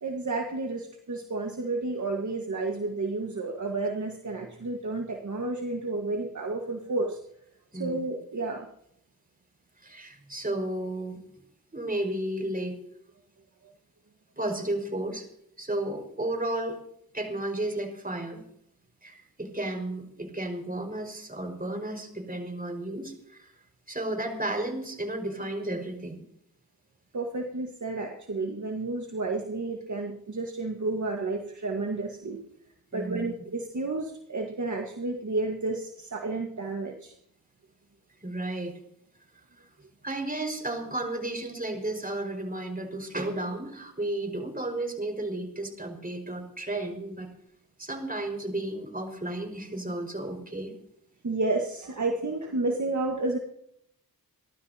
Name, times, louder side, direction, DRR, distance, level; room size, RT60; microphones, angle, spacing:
voice 1, 0.0-7.2 7.7-8.7 27.1-32.4 32.9-37.1 51.2-53.4, right 3 dB, 50° right, 2 dB, 1.7 m, -31 dB
voice 2, 9.8-11.2 11.7-12.8 14.4-15.3 15.6-16.8 17.1-18.4 19.0-23.5 23.9-26.2 32.9-33.3 38.2-38.7 40.0-47.3 47.8-50.7, right 1 dB, 25° right, 3 dB, 5.4 m, -33 dB
28.0 x 12.5 x 2.9 m, 0.74 s
cardioid pair, 60°, 37 cm